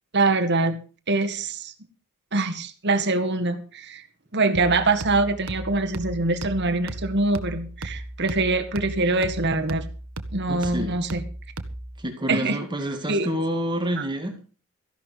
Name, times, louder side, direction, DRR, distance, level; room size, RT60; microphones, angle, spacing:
voice 1, 0.1-0.8 1.1-1.7 2.3-4.0 4.3-9.8 10.3-11.2 12.3-12.6 13.1-13.3, right 3 dB, 50° right, 7 dB, 1.8 m, -24 dB
sound 1, 4.5-12.0, right 1 dB, 75° right, 1.5 m, -36 dB
voice 2, 10.5-11.0 12.0-14.4, equal, 20° right, 4 dB, 2.2 m, -28 dB
14.5 x 11.5 x 5.1 m, 0.38 s
head